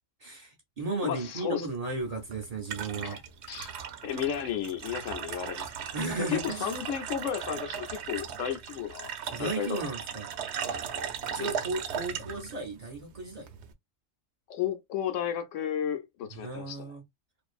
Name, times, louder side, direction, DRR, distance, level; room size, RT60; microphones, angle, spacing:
voice 1, 0.2-3.2 5.9-6.8 9.3-10.3 11.3-13.5 16.3-17.0, right 3 dB, 45° right, 0.5 m, -35 dB
voice 2, 1.0-1.6 3.0-3.2 3.5-3.7 4.0-5.7 6.2-9.1 9.4-9.8 11.3-11.5 14.5-16.8, left 9 dB, 75° left, 0.9 m, -33 dB
sound 1, 2.0-13.7, right 7 dB, 65° right, 0.8 m, -38 dB
2.5 x 2.4 x 2.4 m
omnidirectional pair, 1.3 m